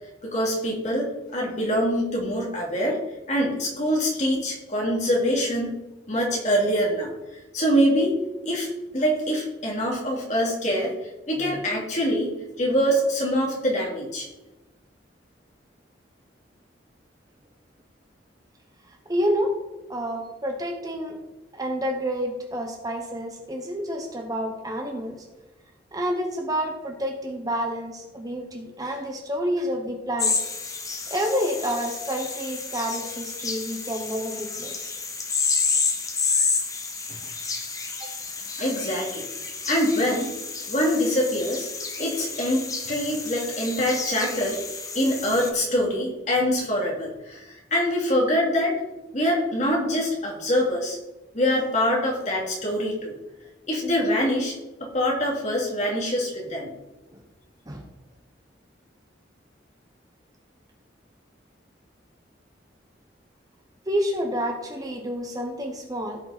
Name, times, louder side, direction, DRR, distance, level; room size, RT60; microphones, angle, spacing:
voice 1, 0.2-3.0 3.3-5.7 6.1-7.1 7.5-8.1 8.4-8.7 8.9-10.9 11.3-12.3 12.6-14.3 38.6-39.3 39.7-40.3 40.7-41.7 42.0-44.6 44.9-48.8 49.1-51.0 51.3-53.1 53.7-54.5 54.8-56.7, equal, 40° left, -2 dB, 2.8 m, -24 dB
voice 2, 18.9-19.5 19.9-21.2 21.5-25.2 25.9-30.4 31.1-34.9 37.1-37.3 38.0-38.1 38.4-38.7 57.1-57.2 57.7-57.8 63.9-66.2, equal, 20° right, 2 dB, 1.1 m, -29 dB
sound 1, 30.2-45.5, left 4 dB, 20° left, 1.0 m, -30 dB
16.0 x 5.4 x 4.2 m, 1.0 s
head